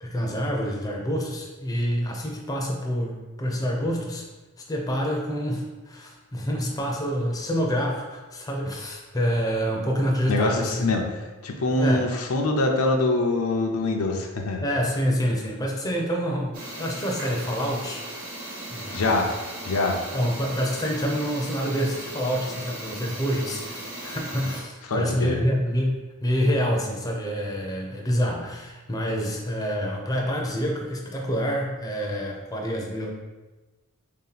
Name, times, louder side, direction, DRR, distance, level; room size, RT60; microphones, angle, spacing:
voice 1, 0.0-4.2 4.7-10.8 11.8-12.1 14.6-18.0 18.7-19.3 20.1-33.1, equal, 15° left, -1 dB, 0.5 m, -27 dB
voice 2, 10.3-11.1 11.4-14.6 18.9-19.3 19.7-20.0 24.9-25.4, left 2 dB, 75° left, 2 dB, 0.5 m, -24 dB
sound 1, 16.5-24.6, right 1 dB, 85° right, 1.1 m, -37 dB
3.5 x 2.8 x 3.9 m, 1.2 s
head